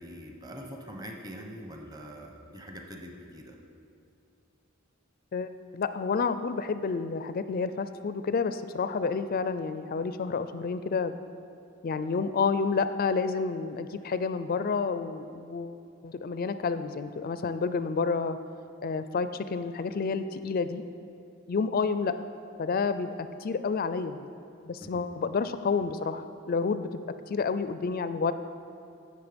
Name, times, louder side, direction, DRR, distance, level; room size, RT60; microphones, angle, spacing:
voice 1, 0.0-3.6 24.8-25.0, equal, 20° right, 2 dB, 0.9 m, -43 dB
voice 2, 5.3-11.2 11.8-15.8 16.0-18.4 18.8-20.8 21.5-22.2 22.6-24.3 24.6-26.9 27.3-28.3, left 5 dB, 45° left, 12 dB, 0.4 m, -29 dB
15.5 x 6.4 x 5.1 m, 2.5 s
head